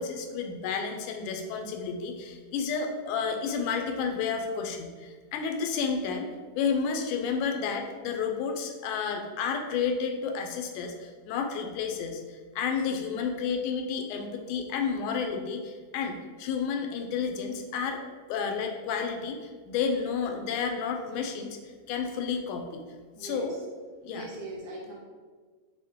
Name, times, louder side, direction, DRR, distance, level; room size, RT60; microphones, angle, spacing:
voice 1, 0.0-6.3 6.6-18.0 18.3-21.6 21.9-22.8 23.2-23.6 24.0-24.3, left 6 dB, 90° left, 4 dB, 2.1 m, -31 dB
voice 2, 23.2-23.6 24.1-25.0, right 2 dB, 75° right, -2 dB, 1.7 m, -40 dB
6.4 x 2.2 x 3.6 m, 1.4 s
omnidirectional pair, 3.5 m